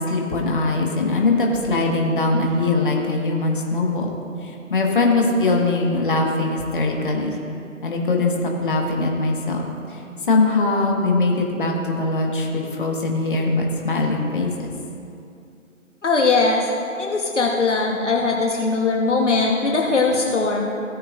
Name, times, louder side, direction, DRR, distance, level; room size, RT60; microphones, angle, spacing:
voice 1, 0.1-4.1 4.4-7.3 7.8-9.6 9.9-10.0 10.3-14.7, left 3 dB, 40° left, 0 dB, 1.4 m, -21 dB
voice 2, 16.0-16.6 17.0-20.7, left 3 dB, 60° left, 0 dB, 1.2 m, -20 dB
17.0 x 8.6 x 2.5 m, 2.6 s
figure-of-eight pair, 155°, 40 cm